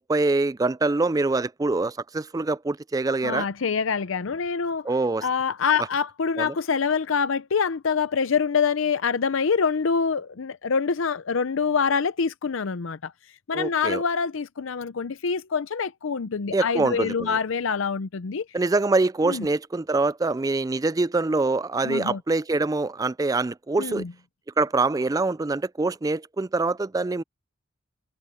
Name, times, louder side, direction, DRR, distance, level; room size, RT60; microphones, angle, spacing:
voice 1, 0.0-3.5 4.8-5.3 6.4-6.6 13.5-14.0 16.5-17.4 18.5-24.0 24.6-27.2, right 3 dB, 15° right, 0.3 m, -24 dB
voice 2, 3.2-4.9 5.2-13.1 13.5-18.4 19.2-19.5 21.8-22.2 23.8-24.1, left 5 dB, 70° left, 0.6 m, -25 dB
head